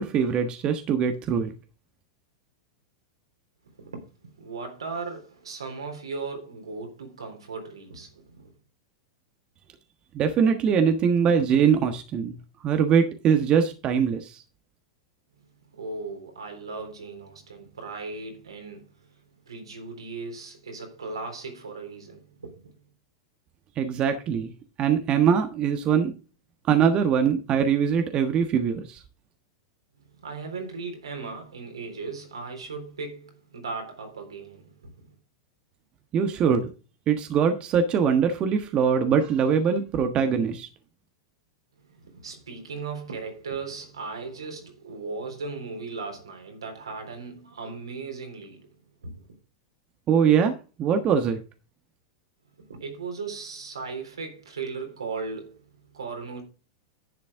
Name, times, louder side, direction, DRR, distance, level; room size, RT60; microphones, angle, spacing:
voice 1, 0.0-1.5 10.1-12.3 12.6-14.4 23.8-24.5 24.8-26.1 26.7-29.0 36.1-36.7 37.1-40.7 50.1-51.4, right 7 dB, 35° right, 1.3 m, -22 dB
voice 2, 3.8-8.5 15.3-22.8 30.1-35.1 41.8-48.7 49.0-49.4 52.7-56.4, right 4 dB, 85° right, 3.7 m, -37 dB
10.5 x 7.5 x 3.6 m
hypercardioid pair, 100°, 3 cm